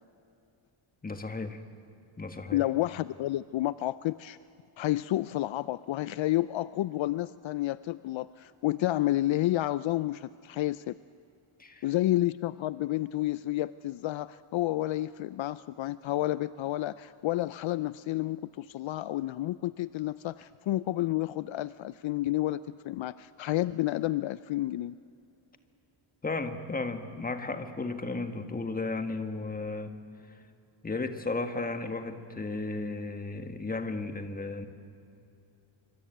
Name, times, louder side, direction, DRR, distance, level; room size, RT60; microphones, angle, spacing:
voice 1, 1.0-1.6 2.2-2.6 11.6-11.8 26.2-29.9 30.8-34.7, left 3 dB, 15° left, 7 dB, 1.7 m, -34 dB
voice 2, 2.5-4.4 4.8-10.9 11.8-25.0, left 15 dB, 65° left, 16 dB, 0.6 m, -30 dB
25.5 x 25.0 x 9.3 m, 2.7 s
wide cardioid pair, 155°, 49 cm